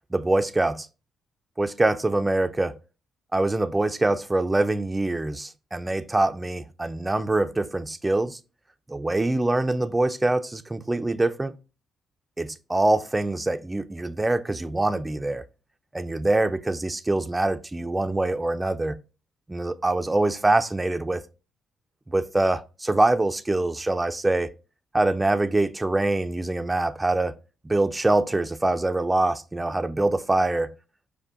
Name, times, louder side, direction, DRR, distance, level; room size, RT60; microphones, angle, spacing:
voice 1, 0.1-0.9 1.6-2.8 3.3-8.4 8.9-11.5 12.4-15.4 15.9-19.0 19.5-21.2 22.1-24.5 24.9-27.4 27.6-30.7, right 2 dB, 15° right, 0.3 m, -24 dB
5.5 x 2.1 x 3.6 m
cardioid pair, 90°, 0 cm